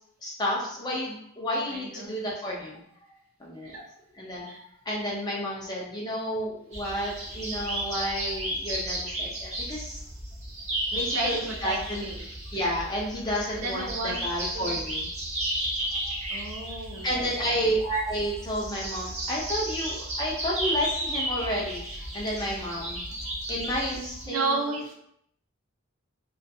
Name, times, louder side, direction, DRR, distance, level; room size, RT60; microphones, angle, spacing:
voice 1, 0.2-2.8 3.4-3.8 4.2-4.6 4.9-10.0 10.9-12.0 12.5-15.1 17.0-23.0 23.5-24.6, equal, 20° left, -4 dB, 0.5 m, -31 dB
voice 2, 1.7-2.2 3.7-3.8 4.5-4.6 10.9-12.2 13.6-14.2 14.5-14.8 16.3-17.2 17.5-17.6 24.3-24.9, right 3 dB, 70° right, -1 dB, 0.6 m, -32 dB
sound 1, 6.7-24.3, right 1 dB, 30° right, 0.7 m, -34 dB
2.4 x 2.3 x 2.6 m, 0.71 s
head